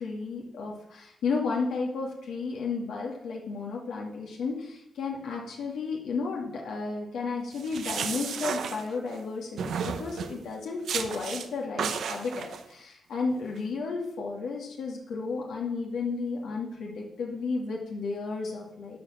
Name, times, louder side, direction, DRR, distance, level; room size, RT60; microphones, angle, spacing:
voice 1, 0.0-19.0, left 4 dB, 90° left, -2 dB, 2.2 m, -33 dB
sound 1, 7.5-9.2 9.6-10.4 10.9-11.5 11.8-12.6, right 7 dB, 80° right, 0.9 m, -33 dB
13.0 x 5.0 x 5.8 m, 0.79 s
cardioid pair, 90°, 0 cm